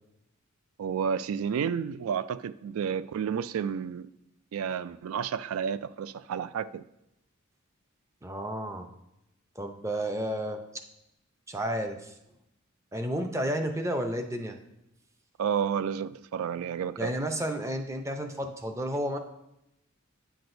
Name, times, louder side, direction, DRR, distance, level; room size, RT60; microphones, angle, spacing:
voice 1, 0.8-4.1 4.5-6.8 15.4-17.1, right 7 dB, 80° right, 0.3 m, -31 dB
voice 2, 8.2-8.9 9.6-10.6 11.5-12.1 12.9-14.6 17.0-19.2, equal, 15° right, 0.5 m, -31 dB
9.2 x 6.0 x 2.6 m
head